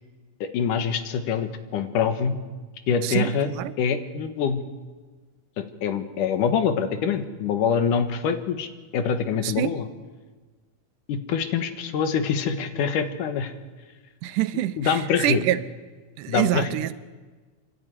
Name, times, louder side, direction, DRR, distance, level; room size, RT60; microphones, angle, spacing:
voice 1, 0.4-2.4 2.9-3.5 3.8-4.6 5.6-9.9 11.1-13.5 14.8-15.4 16.3-16.8, left 6 dB, 90° left, 9 dB, 2.9 m, -25 dB
voice 2, 3.0-3.7 9.4-9.8 14.2-15.0 15.2-15.6 16.2-16.9, right 13 dB, 90° right, 13 dB, 2.4 m, -25 dB
30.0 x 11.5 x 9.8 m, 1.4 s
omnidirectional pair, 3.6 m